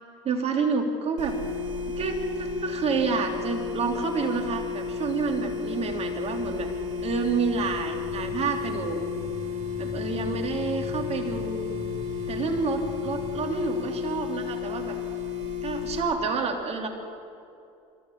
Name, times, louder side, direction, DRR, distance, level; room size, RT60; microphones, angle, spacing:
voice 1, 0.2-1.4 1.8-6.7 7.0-9.1 9.8-11.8 12.3-15.0 15.6-16.9, right 4 dB, 40° right, 3 dB, 3.1 m, -29 dB
sound 1, 1.2-16.0, left 6 dB, 75° right, 4.0 m, -33 dB
sound 2, 5.1-13.6, left 2 dB, 30° left, 6.0 m, -42 dB
27.0 x 13.5 x 7.3 m, 2.6 s
hypercardioid pair, 75°, 16 cm